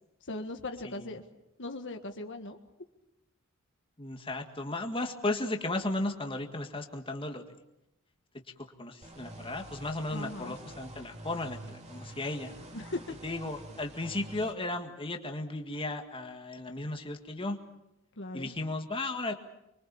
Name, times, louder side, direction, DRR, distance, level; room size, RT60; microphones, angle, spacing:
voice 1, 0.2-1.2 1.6-2.6 10.1-10.5 12.7-13.1 18.2-18.5, left 2 dB, 60° left, 6 dB, 1.6 m, -39 dB
voice 2, 4.0-7.5 8.8-12.5 13.2-17.6 18.3-19.3, left 2 dB, 25° left, 4 dB, 1.9 m, -35 dB
sound 1, 9.0-14.5, right 1 dB, 30° right, 2.7 m, -47 dB
26.0 x 23.5 x 7.1 m, 0.88 s
head